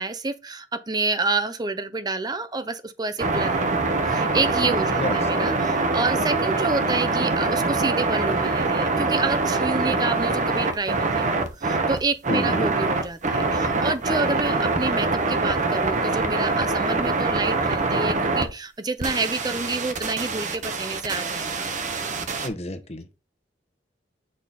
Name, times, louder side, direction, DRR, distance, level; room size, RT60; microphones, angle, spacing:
voice 1, 0.0-21.6, right 3 dB, 25° right, 0.6 m, -28 dB
sound 1, 3.2-18.5 19.0-22.5, right 3 dB, 45° right, 0.9 m, -24 dB
voice 2, 12.3-12.7 22.4-23.2, left 1 dB, 35° left, 1.0 m, -29 dB
6.4 x 3.8 x 4.1 m
head